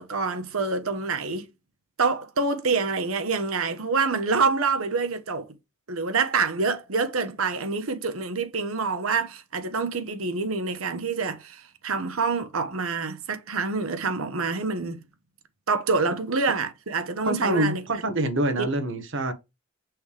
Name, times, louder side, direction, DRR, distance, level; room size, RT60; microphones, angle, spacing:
voice 1, 0.0-1.5 2.0-5.5 5.9-15.0 15.7-17.8 18.6-18.7, right 4 dB, 85° right, 1.0 m, -26 dB
voice 2, 17.2-19.3, right 1 dB, 65° right, 1.3 m, -25 dB
6.2 x 3.3 x 4.9 m
head